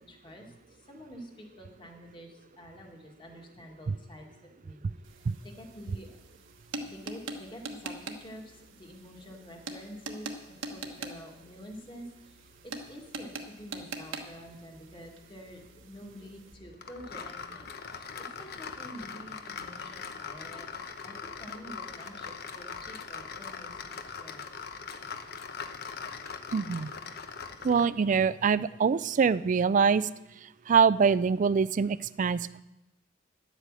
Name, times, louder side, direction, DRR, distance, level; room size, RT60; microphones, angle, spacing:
voice 1, 0.0-6.2 6.7-20.6 21.0-24.5, equal, 25° left, 1 dB, 1.9 m, -48 dB
sound 1, 5.0-16.5, right 3 dB, 75° right, 1.2 m, -44 dB
sound 2, 16.8-27.9, left 6 dB, 55° left, 0.8 m, -41 dB
voice 2, 26.5-26.9 27.6-30.1 30.7-32.6, right 6 dB, 40° right, 18 dB, 0.3 m, -24 dB
11.0 x 8.1 x 7.6 m, 0.96 s
head